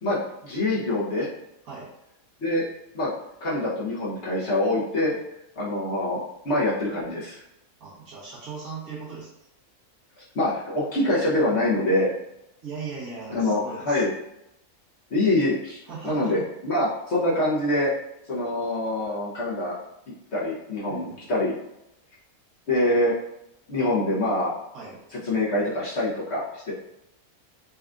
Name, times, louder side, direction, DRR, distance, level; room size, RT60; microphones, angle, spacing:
voice 1, 0.0-1.3 2.4-2.6 2.9-3.1 3.4-5.2 5.6-7.4 10.2-12.1 13.3-14.1 15.1-17.9 18.3-19.8 20.3-21.5 22.7-23.1 23.7-24.5 25.1-26.7, left 1 dB, 55° left, -7 dB, 0.9 m, -25 dB
voice 2, 7.8-9.3 12.6-14.0 15.9-16.4 20.9-21.4 24.7-25.0, right 4 dB, 80° right, -8 dB, 1.6 m, -38 dB
4.2 x 2.3 x 2.4 m, 0.87 s
omnidirectional pair, 1.5 m